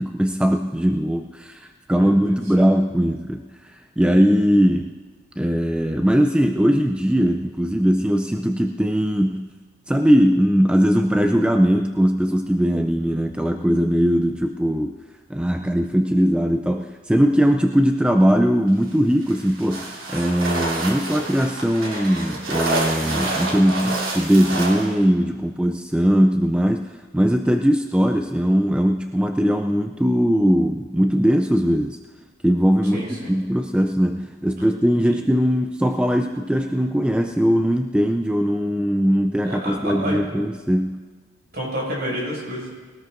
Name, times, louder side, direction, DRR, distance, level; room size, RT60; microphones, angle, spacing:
voice 1, 0.0-5.0 5.4-9.5 9.9-15.0 15.3-32.0 32.4-33.0 33.3-41.0, equal, 5° right, 5 dB, 0.3 m, -20 dB
voice 2, 2.0-2.4 32.9-33.3 35.0-35.1 39.4-40.2 41.5-42.7, equal, 50° right, -4 dB, 5.9 m, -29 dB
sound 1, 19.2-24.9, right 2 dB, 80° right, 3.1 m, -28 dB
20.5 x 18.5 x 2.6 m, 1.4 s
head